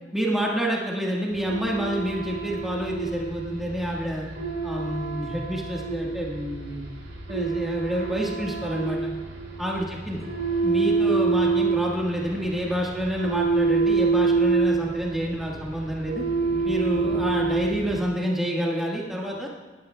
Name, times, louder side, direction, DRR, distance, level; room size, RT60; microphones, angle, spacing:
voice 1, 0.1-4.3 4.6-6.8 7.3-9.0 9.6-10.3 10.6-16.2 16.6-19.5, equal, ahead, -3 dB, 1.4 m, -28 dB
sound 1, 1.3-18.0, right 4 dB, 80° right, 2.7 m, -27 dB
17.5 x 12.0 x 2.2 m, 1.4 s
head